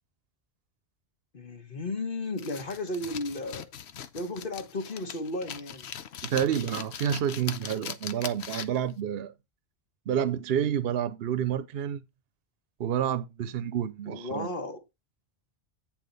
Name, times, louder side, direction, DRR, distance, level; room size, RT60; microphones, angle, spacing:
voice 1, 1.3-3.7 4.1-5.9 14.1-14.8, left 2 dB, 55° left, 1.4 m, -34 dB
sound 1, 2.4-8.9, left 8 dB, 85° left, 1.0 m, -40 dB
voice 2, 6.2-9.3 10.1-12.0 12.8-14.5, right 9 dB, 65° right, 0.9 m, -29 dB
9.4 x 4.4 x 5.3 m
omnidirectional pair, 1.1 m